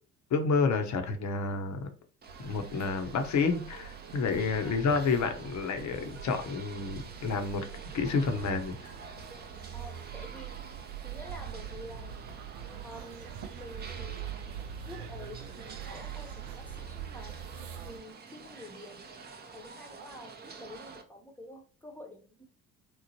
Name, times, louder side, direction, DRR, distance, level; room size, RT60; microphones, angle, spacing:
voice 1, 0.3-1.9 2.4-7.7 7.9-8.8, left 4 dB, 45° left, 0.7 m, -29 dB
sound 1, 2.2-21.0, right 5 dB, 25° right, 0.5 m, -49 dB
sound 2, 2.3-18.0, right 9 dB, 75° right, 0.5 m, -43 dB
voice 2, 9.7-10.5 11.0-12.2 12.8-14.4 14.8-17.4 17.8-19.0 19.5-22.5, left 1 dB, 5° left, 0.8 m, -48 dB
3.0 x 2.0 x 2.8 m
hypercardioid pair, 55°, 42 cm